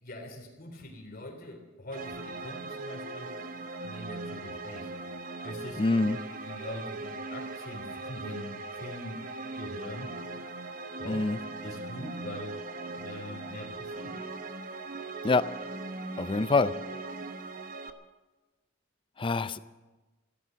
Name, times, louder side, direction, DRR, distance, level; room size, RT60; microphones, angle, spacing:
voice 1, 0.0-3.3 3.8-4.9 5.4-5.8 6.3-9.2 9.5-10.1 11.0-11.3 11.6-12.6 13.0-14.2, left 1 dB, 45° left, 3 dB, 3.4 m, -43 dB
sound 1, 1.9-17.9, right 3 dB, 45° right, 0.9 m, -39 dB
voice 2, 5.8-6.2 11.1-11.4 15.2-15.4 16.2-16.7 19.2-19.6, left 3 dB, 25° left, 14 dB, 0.4 m, -25 dB
15.5 x 12.5 x 7.5 m, 1.2 s
head